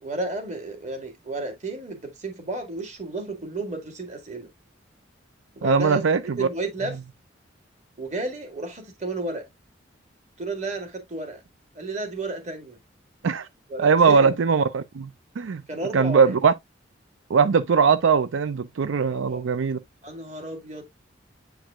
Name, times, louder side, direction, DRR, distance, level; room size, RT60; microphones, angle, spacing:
voice 1, 0.0-4.5 5.6-6.0 6.4-7.0 8.0-9.5 10.4-11.4 11.8-12.8 13.7-14.3 15.7-16.4 19.1-19.6 20.0-20.8, right 2 dB, 35° right, 2.0 m, -32 dB
voice 2, 5.6-6.5 13.2-13.5 13.8-15.1 15.4-15.6 15.9-16.5 17.3-19.8, right 5 dB, 80° right, 0.4 m, -20 dB
8.9 x 4.7 x 2.4 m
head